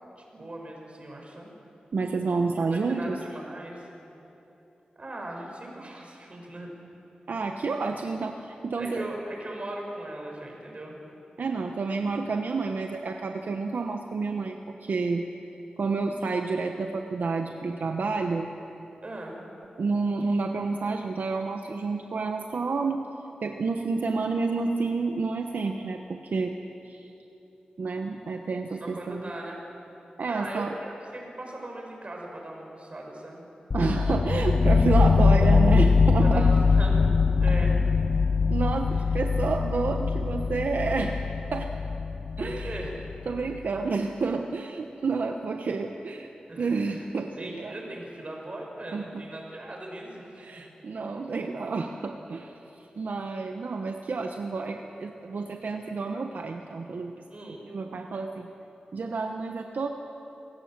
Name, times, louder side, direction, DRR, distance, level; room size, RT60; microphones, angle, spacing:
voice 1, 0.3-1.5 2.7-3.9 5.0-6.7 8.8-11.0 19.0-19.4 28.8-29.6 30.2-33.4 36.2-37.1 37.4-37.8 38.9-39.0 42.4-42.9 46.5-47.0 47.4-50.6 57.3-57.6, right 1 dB, 45° right, 0 dB, 5.8 m, -39 dB
voice 2, 1.9-3.2 7.3-9.0 11.4-15.2 15.8-18.5 19.8-23.0 23.4-26.5 26.8-27.1 27.8-29.2 30.2-30.7 33.7-36.5 38.5-41.2 41.5-41.7 42.4-42.8 43.3-46.3 46.6-47.7 48.9-49.2 50.4-57.1 57.7-58.5 58.9-59.9, right 4 dB, 80° right, 4 dB, 1.1 m, -29 dB
sound 1, 33.7-43.5, left 4 dB, 55° left, 0.4 m, -22 dB
26.0 x 17.0 x 7.5 m, 3.0 s
wide cardioid pair, 65°, 3 cm